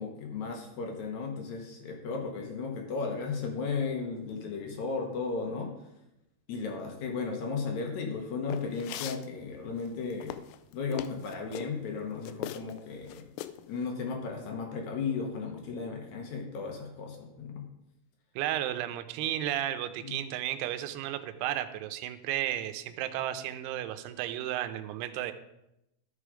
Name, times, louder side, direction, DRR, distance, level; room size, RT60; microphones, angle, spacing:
voice 1, 0.0-5.7 6.5-10.3 10.7-13.2 13.7-17.6 20.0-20.1, left 4 dB, 70° left, 2 dB, 1.8 m, -35 dB
sound 1, 8.5-9.3 9.9-11.7 12.3-12.8 13.1-13.6, left 13 dB, 90° left, 2.0 m, -39 dB
voice 2, 18.4-25.3, right 12 dB, 85° right, 9 dB, 2.6 m, -33 dB
13.5 x 5.0 x 5.0 m, 0.87 s
omnidirectional pair, 4.7 m